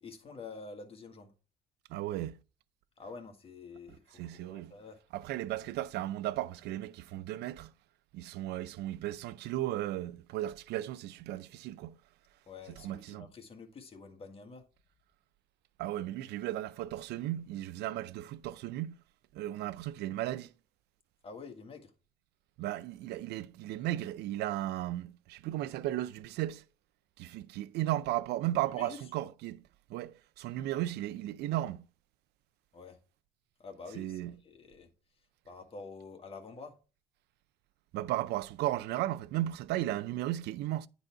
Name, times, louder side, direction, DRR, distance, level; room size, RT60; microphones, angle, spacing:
voice 1, 0.0-1.3 3.0-5.0 12.5-14.6 21.2-21.9 28.7-29.0 32.7-33.0 33.6-34.9 35.4-36.7, left 4 dB, 35° left, 1.6 m, -48 dB
voice 2, 1.9-2.4 4.2-4.7 5.1-7.7 8.1-12.0 12.8-13.3 15.8-18.9 19.3-20.5 22.6-26.6 27.2-29.6 29.9-31.8 34.0-34.3 37.9-40.9, right 14 dB, 80° right, 0.5 m, -35 dB
9.8 x 4.1 x 4.5 m
cardioid pair, 110°, 17 cm